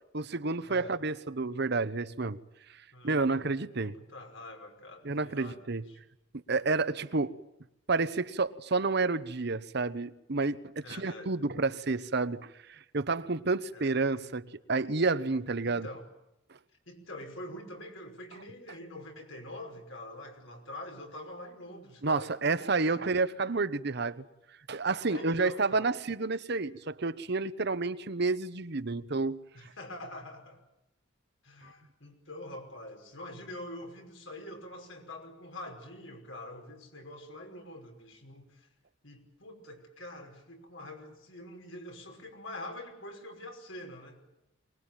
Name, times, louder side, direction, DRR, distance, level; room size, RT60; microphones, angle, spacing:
voice 1, 0.1-2.4 3.0-3.9 5.0-5.9 6.5-7.4 7.9-15.9 22.0-24.2 24.7-29.4, right 3 dB, 55° right, 1.0 m, -30 dB
voice 2, 3.8-6.0 10.8-11.3 13.7-14.0 15.6-16.1 16.9-23.4 25.1-25.9 29.5-30.6 31.4-38.7 39.0-44.3, left 1 dB, 80° left, 5.5 m, -45 dB
24.0 x 20.5 x 9.0 m
head